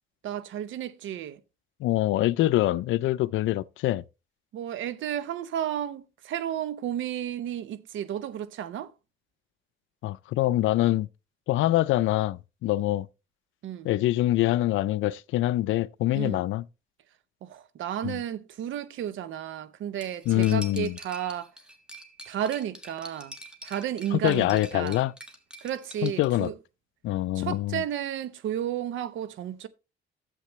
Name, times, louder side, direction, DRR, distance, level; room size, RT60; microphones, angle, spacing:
voice 1, 0.2-1.4 4.5-8.9 13.6-13.9 16.1-16.4 17.4-21.5 22.3-23.4 23.6-25.0 25.6-26.5 27.3-29.7, right 10 dB, 75° right, 0.8 m, -32 dB
voice 2, 1.8-4.0 10.0-11.1 11.5-13.1 13.8-16.6 18.0-18.2 20.3-21.0 24.1-25.1 26.0-26.5 27.0-27.8, left 15 dB, 80° left, 0.5 m, -25 dB
Cutlery silverware, 20.0-26.3, right 1 dB, 5° right, 1.6 m, -45 dB
11.5 x 7.6 x 3.1 m
cardioid pair, 90°, 20 cm